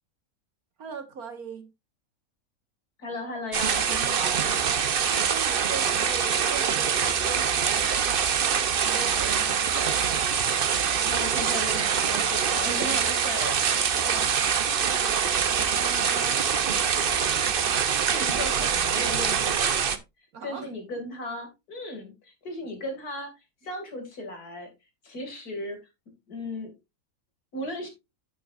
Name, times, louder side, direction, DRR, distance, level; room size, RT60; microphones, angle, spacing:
voice 1, 0.8-1.7 3.8-4.4 5.0-8.1 8.8-10.1 13.9-14.4 20.3-20.7, right 6 dB, 70° right, 1.9 m, -40 dB
voice 2, 3.0-4.5 11.1-13.8 15.5-16.4 18.0-19.9 20.4-23.3 23.6-24.7 25.0-25.8 26.3-26.7 27.5-27.9, left 1 dB, 80° left, 3.0 m, -36 dB
sound 1, 3.5-20.0, right 7 dB, 50° right, 0.8 m, -24 dB
9.4 x 8.1 x 2.5 m
omnidirectional pair, 1.6 m